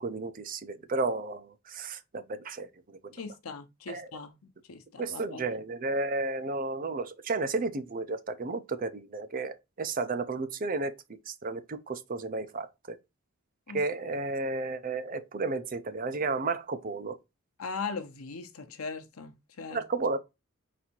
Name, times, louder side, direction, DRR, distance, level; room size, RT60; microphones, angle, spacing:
voice 1, 0.0-2.7 3.9-4.1 5.0-10.9 11.3-13.0 13.7-17.2 19.7-20.2, right 3 dB, 40° right, 0.5 m, -32 dB
voice 2, 3.1-5.6 13.7-13.8 17.6-19.8, left 4 dB, 85° left, 0.8 m, -40 dB
4.2 x 2.6 x 4.3 m
head